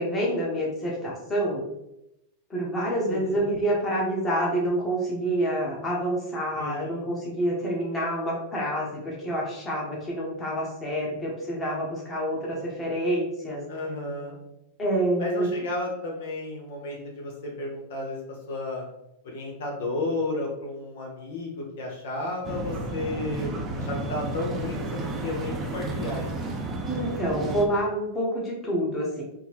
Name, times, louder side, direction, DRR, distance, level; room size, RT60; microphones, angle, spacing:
voice 1, 0.0-1.6 2.5-13.6 14.8-15.5 26.8-29.2, right 1 dB, 15° left, -4 dB, 1.1 m, -27 dB
voice 2, 3.1-3.5 6.6-7.0 13.7-14.4 15.2-18.2 18.5-18.8 19.2-26.3, left 2 dB, 75° left, -1 dB, 1.0 m, -33 dB
sound 1, 22.4-27.7, right 2 dB, 25° right, 0.5 m, -32 dB
3.6 x 2.2 x 3.0 m, 0.86 s
supercardioid pair, 130°, 0 cm